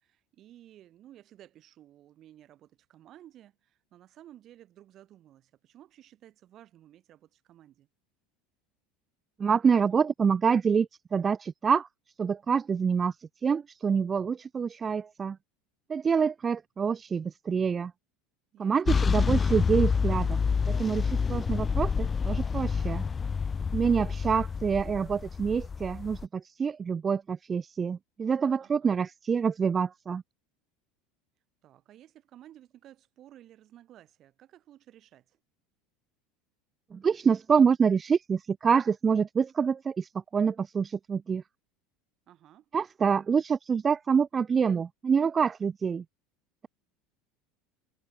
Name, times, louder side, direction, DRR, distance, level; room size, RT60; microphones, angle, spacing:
voice 1, 0.0-7.9 18.5-19.0 23.8-24.0 28.6-29.0 31.6-35.4 42.3-42.7, right 12 dB, 45° right, 4.0 m, -55 dB
voice 2, 9.4-11.9 12.2-13.1 13.4-15.4 15.9-17.9 18.6-20.4 20.7-23.0 23.7-30.2 36.9-41.4 42.7-46.0, right 6 dB, 25° right, 0.4 m, -26 dB
sound 1, 18.9-26.2, left 5 dB, 25° left, 0.6 m, -28 dB
supercardioid pair, 100°, 0 cm